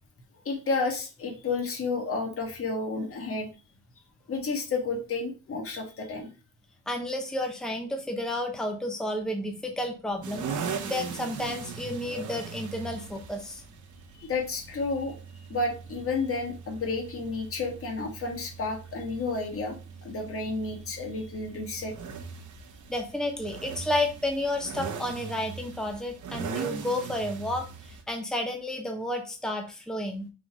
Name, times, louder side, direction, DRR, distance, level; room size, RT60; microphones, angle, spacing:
voice 1, 0.5-3.5 4.3-6.3 14.2-15.1 15.5-19.8 20.0-21.9, left 3 dB, 50° left, 2 dB, 1.8 m, -31 dB
voice 2, 6.9-13.6 22.9-30.3, left 1 dB, ahead, 3 dB, 0.9 m, -31 dB
sound 1, 10.2-28.0, right 6 dB, 85° right, 1.2 m, -40 dB
5.8 x 3.9 x 4.9 m, 0.33 s
wide cardioid pair, 150°, 29 cm